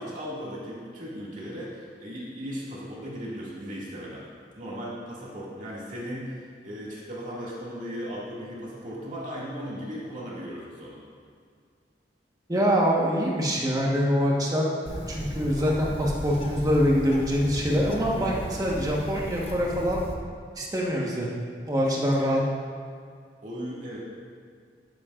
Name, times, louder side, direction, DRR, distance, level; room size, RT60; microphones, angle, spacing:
voice 1, 0.0-4.2 4.6-11.0 22.2-22.4 23.4-24.0, equal, 45° right, -6 dB, 2.2 m, -37 dB
voice 2, 12.5-14.6 15.1-20.0 20.5-21.3 21.7-22.4, equal, 20° right, -3 dB, 1.2 m, -24 dB
Bird, 14.9-20.1, equal, 30° left, 0.8 m, -35 dB
10.5 x 9.5 x 2.5 m, 2.1 s
head